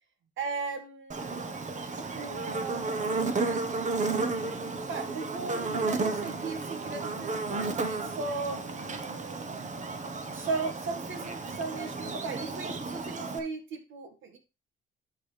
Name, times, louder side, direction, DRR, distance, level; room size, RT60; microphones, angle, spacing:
voice 1, 0.4-1.7 2.0-2.9 4.9-9.5 10.3-14.4, right 4 dB, 75° right, 6 dB, 1.8 m, -37 dB
Buzz, 1.1-13.4, right 3 dB, 35° right, 1.3 m, -33 dB
11.5 x 4.9 x 3.3 m, 0.28 s
cardioid pair, 90°, 20 cm